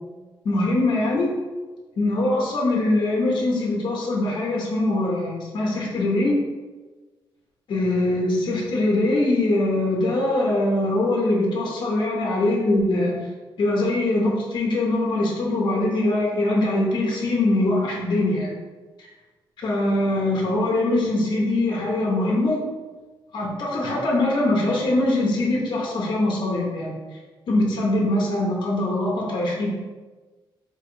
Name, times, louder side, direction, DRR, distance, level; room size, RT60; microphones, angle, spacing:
voice 1, 0.4-1.3 2.0-6.4 7.7-13.2 13.6-18.5 19.0-19.1 19.6-22.6 23.3-27.0 27.5-29.8, left 2 dB, 60° left, -2 dB, 1.0 m, -22 dB
3.5 x 3.0 x 4.5 m, 1.3 s
wide cardioid pair, 150°, 9 cm